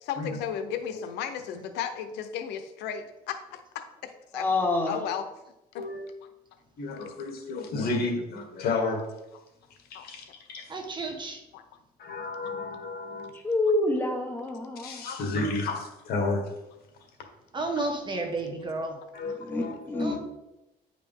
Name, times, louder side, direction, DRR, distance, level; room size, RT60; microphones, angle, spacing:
voice 1, 0.0-4.5 4.9-5.2 5.7-5.9 9.9-10.1 11.5-11.6, left 8 dB, 90° left, 8 dB, 0.7 m, -34 dB
voice 2, 4.3-5.0 13.3-15.0 19.4-20.2, left 2 dB, 10° left, 2 dB, 1.4 m, -27 dB
voice 3, 5.8-6.1 6.8-9.1 10.0-10.2 10.5-10.7 12.0-13.3 14.8-16.5 19.1-20.2, left 3 dB, 65° left, 2 dB, 1.8 m, -31 dB
voice 4, 10.7-11.4 17.5-19.0 20.0-20.2, right 2 dB, 25° right, 4 dB, 1.4 m, -32 dB
9.4 x 5.1 x 3.6 m, 0.93 s
cardioid pair, 110°, 17 cm